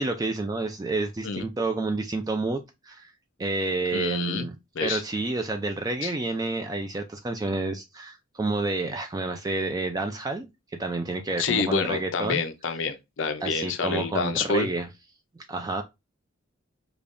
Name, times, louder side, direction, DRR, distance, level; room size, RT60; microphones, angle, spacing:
voice 1, 0.0-3.1 3.4-4.5 4.8-10.5 10.8-12.4 13.4-14.9 15.5-15.8, right 2 dB, 20° right, 0.3 m, -29 dB
voice 2, 3.9-4.5 4.7-5.0 6.0-6.1 11.4-14.7, left 5 dB, 65° left, 0.5 m, -27 dB
5.1 x 2.3 x 2.5 m
head